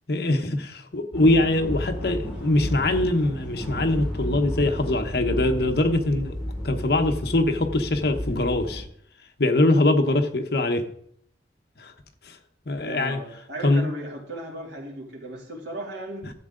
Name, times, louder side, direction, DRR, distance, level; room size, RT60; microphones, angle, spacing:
voice 1, 0.1-6.3 6.6-8.8 9.4-10.8 11.8-11.9 12.3-12.4 12.7-13.2 13.6-13.9, left 2 dB, 55° left, 1.0 m, -22 dB
sound 1, 1.1-8.8, equal, 5° right, 4.8 m, -32 dB
voice 2, 12.8-16.3, right 1 dB, 70° right, 2.9 m, -36 dB
12.5 x 7.5 x 3.8 m
head